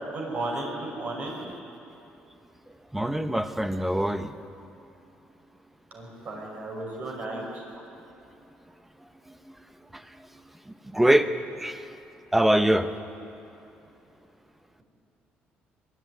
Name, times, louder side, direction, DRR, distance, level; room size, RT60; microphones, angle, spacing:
voice 1, 0.1-1.4 5.9-7.8, right 2 dB, 45° right, -2 dB, 5.7 m, -34 dB
voice 2, 2.9-4.3 10.9-11.3 11.6-11.8 12.3-12.9, right 1 dB, 5° right, 10 dB, 0.9 m, -22 dB
22.5 x 13.5 x 9.4 m, 2.9 s
cardioid pair, 120°, 4 cm